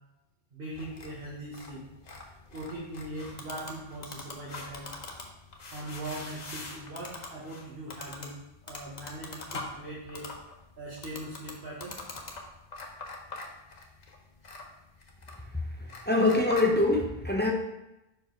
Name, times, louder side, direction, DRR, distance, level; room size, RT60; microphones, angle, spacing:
voice 1, 0.5-1.8 2.5-4.9 5.7-8.4 8.7-10.3 10.8-12.0, right 1 dB, 55° right, -6 dB, 1.5 m, -40 dB
sound 1, 0.7-16.7, left 3 dB, 40° left, 0.9 m, -44 dB
voice 2, 16.1-17.5, left 2 dB, 15° left, 0 dB, 0.5 m, -24 dB
5.6 x 4.8 x 4.4 m, 0.93 s
omnidirectional pair, 1.2 m